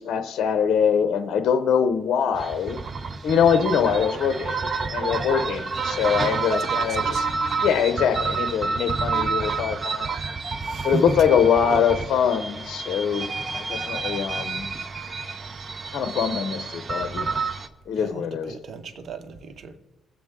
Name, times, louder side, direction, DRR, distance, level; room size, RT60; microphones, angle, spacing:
voice 1, 0.0-2.8 3.2-4.5 4.9-7.3 7.6-10.1 10.8-14.7 15.9-17.4 17.9-18.5, left 7 dB, 70° left, 0.7 m, -23 dB
sound 1, 2.3-17.7, right 4 dB, 40° right, 0.7 m, -29 dB
voice 2, 6.5-7.2 10.6-11.0 11.7-11.8 18.0-19.8, right 4 dB, 55° right, 1.1 m, -34 dB
21.5 x 7.9 x 3.6 m
cardioid pair, 90°, 0 cm